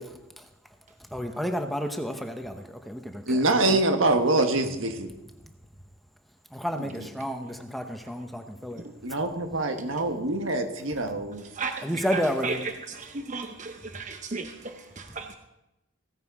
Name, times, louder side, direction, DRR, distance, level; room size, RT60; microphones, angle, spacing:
voice 1, 1.1-3.4 6.5-8.8 11.8-12.6, equal, ahead, 5 dB, 1.0 m, -31 dB
voice 2, 3.3-5.1 6.8-7.1 9.0-11.5, right 2 dB, 85° right, 6 dB, 1.4 m, -25 dB
voice 3, 11.6-12.6 12.9-14.5 15.0-15.3, right 4 dB, 40° right, 6 dB, 0.7 m, -34 dB
16.0 x 9.2 x 4.8 m, 0.96 s
head